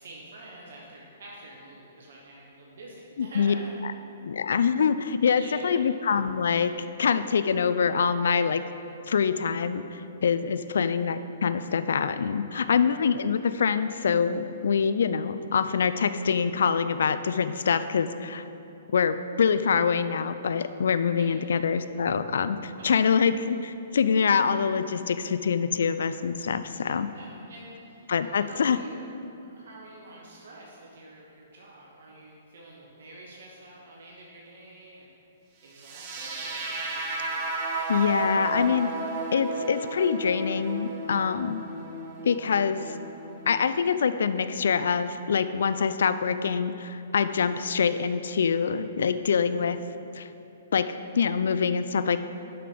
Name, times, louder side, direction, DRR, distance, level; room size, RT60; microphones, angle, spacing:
voice 1, 0.0-3.8 5.3-5.8 12.5-12.7 21.2-21.6 22.8-23.2 26.8-29.0 29.4-35.1 35.6-38.0, right 1 dB, 65° right, -3 dB, 1.1 m, -47 dB
voice 2, 3.2-3.5 4.2-6.7 7.0-8.6 9.1-18.4 18.9-27.1 28.1-28.8 37.9-38.9 39.3-41.6 42.2-43.0 43.5-49.8 50.2-50.3 50.7-52.3, left 6 dB, 65° left, 12 dB, 0.3 m, -25 dB
sound 1, 35.7-43.8, right 2 dB, 40° right, 1.1 m, -34 dB
6.8 x 5.8 x 5.0 m, 2.9 s
figure-of-eight pair, 120°, 0 cm